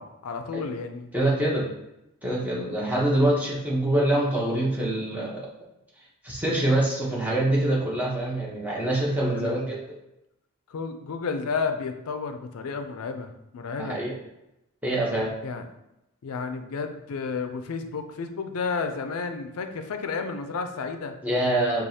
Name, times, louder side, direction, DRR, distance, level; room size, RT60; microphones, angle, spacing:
voice 1, 0.0-1.1 9.3-9.6 10.7-14.0 15.4-15.6 16.2-21.2, left 5 dB, 70° left, 7 dB, 0.4 m, -32 dB
voice 2, 1.1-1.6 2.2-5.5 6.2-9.8 13.8-14.1 14.8-15.3 21.2-21.8, right 1 dB, 5° right, -5 dB, 0.8 m, -25 dB
4.7 x 2.4 x 2.8 m, 0.89 s
head